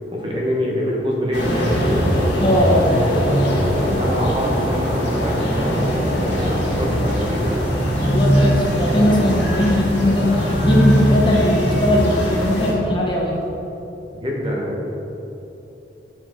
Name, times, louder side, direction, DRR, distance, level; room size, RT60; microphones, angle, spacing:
voice 1, 0.1-2.1 2.7-7.6 14.1-14.8, equal, 30° right, -2 dB, 1.1 m, -25 dB
sound 1, 1.3-12.7, equal, 70° left, 1.7 m, -20 dB
voice 2, 2.4-2.8 8.0-13.4, left 1 dB, 25° left, -2 dB, 0.9 m, -19 dB
8.9 x 4.5 x 4.4 m, 3.0 s
head